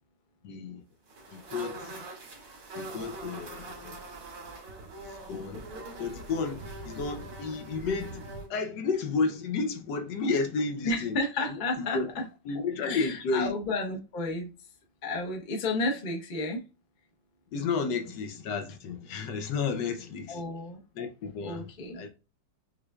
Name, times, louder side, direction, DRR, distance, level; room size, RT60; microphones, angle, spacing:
voice 1, 0.4-0.8 1.3-2.0 2.7-4.0 5.3-5.6 6.0-8.2 8.5-11.2 11.5-12.1 12.5-13.5 17.5-20.4 21.0-21.7 21.9-22.1, left 4 dB, 75° left, 1.3 m, -32 dB
sound 1, 1.1-8.5, right 2 dB, 80° right, 2.5 m, -43 dB
voice 2, 10.8-12.2 12.8-14.5 15.0-16.6 20.3-20.8 21.4-22.0, left 2 dB, 40° left, 0.7 m, -32 dB
6.0 x 3.2 x 2.3 m
omnidirectional pair, 2.0 m